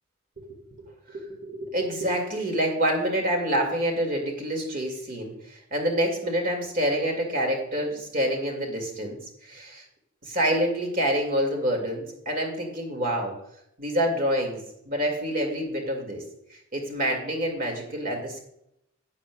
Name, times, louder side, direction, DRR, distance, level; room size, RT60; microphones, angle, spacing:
voice 1, 1.1-9.8 10.3-13.3 13.8-16.2 16.7-18.4, equal, 45° right, 2 dB, 2.3 m, -27 dB
11.5 x 9.3 x 2.4 m, 0.79 s
head